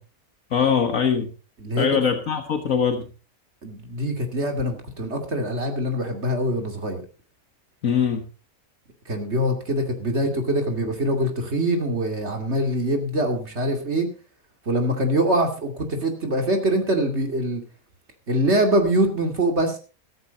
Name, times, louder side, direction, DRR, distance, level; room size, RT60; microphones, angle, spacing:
voice 1, 0.5-1.3 1.8-3.1 7.8-8.2, left 7 dB, 65° left, 6 dB, 1.7 m, -22 dB
voice 2, 3.6-7.0 9.1-14.1 14.7-17.6 18.3-19.8, right 1 dB, 50° right, 4 dB, 2.8 m, -24 dB
14.0 x 14.0 x 4.1 m, 0.34 s
omnidirectional pair, 1.5 m